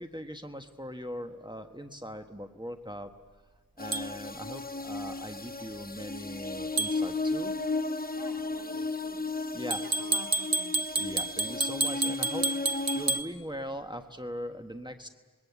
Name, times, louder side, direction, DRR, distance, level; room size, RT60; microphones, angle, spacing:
voice 1, 0.0-3.1 3.8-7.5 9.3-9.8 10.9-15.1, equal, 10° right, 5 dB, 1.3 m, -40 dB
sound 1, 3.8-13.2, left 3 dB, 25° left, 0.9 m, -34 dB
sound 2, 3.9-4.1 6.8-7.0 9.7-13.3, right 3 dB, 70° right, 1.1 m, -29 dB
voice 2, 8.1-9.2 9.6-10.7, left 3 dB, 65° left, 1 dB, 3.1 m, -47 dB
27.5 x 21.0 x 8.2 m, 1.4 s
wide cardioid pair, 45°, 37 cm